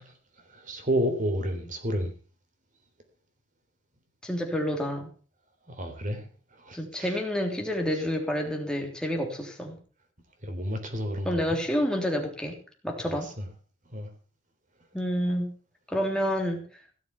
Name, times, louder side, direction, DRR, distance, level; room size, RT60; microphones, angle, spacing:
voice 1, 0.5-2.1 5.7-6.3 6.6-7.2 10.4-11.6 13.1-13.5 13.9-14.1, equal, 45° right, 3.7 m, -31 dB
voice 2, 4.2-5.1 6.7-9.8 11.2-12.6 12.8-13.3 14.9-15.5 15.9-16.6, equal, 5° left, 3.4 m, -28 dB
17.0 x 7.0 x 7.1 m
head